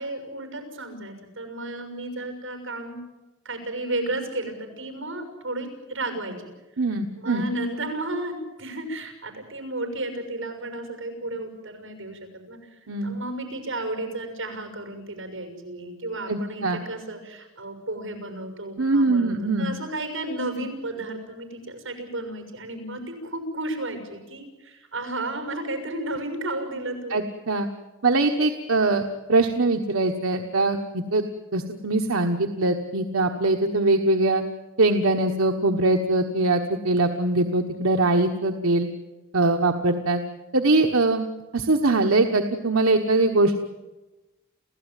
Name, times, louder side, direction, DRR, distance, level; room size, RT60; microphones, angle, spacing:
voice 1, 0.0-3.0 3.4-6.5 6.8-6.9 7.2-27.2, right 2 dB, 65° right, 6 dB, 6.3 m, -33 dB
voice 2, 6.8-7.4 12.9-13.2 16.3-16.8 18.8-19.7 27.1-27.7 28.0-31.2 31.5-34.4 34.8-38.9 39.3-40.2 40.5-41.3 41.5-43.6, right 2 dB, 90° right, 4 dB, 1.4 m, -22 dB
28.5 x 16.0 x 9.2 m, 1.1 s
head